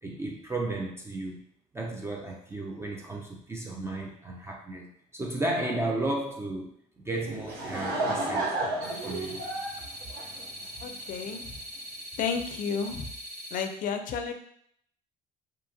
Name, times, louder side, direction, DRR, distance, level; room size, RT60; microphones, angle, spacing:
voice 1, 0.0-1.4 1.7-8.6 9.0-9.4, right 2 dB, 15° right, 0 dB, 0.3 m, -34 dB
Laughter / Crowd, 7.2-10.9, right 2 dB, 70° right, 0.7 m, -32 dB
sound 1, 8.8-13.6, equal, 90° right, 0.9 m, -42 dB
voice 2, 10.8-11.4 12.2-13.1 13.5-14.3, left 6 dB, 55° left, 6 dB, 0.4 m, -31 dB
2.7 x 2.2 x 2.6 m, 0.68 s
cardioid pair, 110°, 17 cm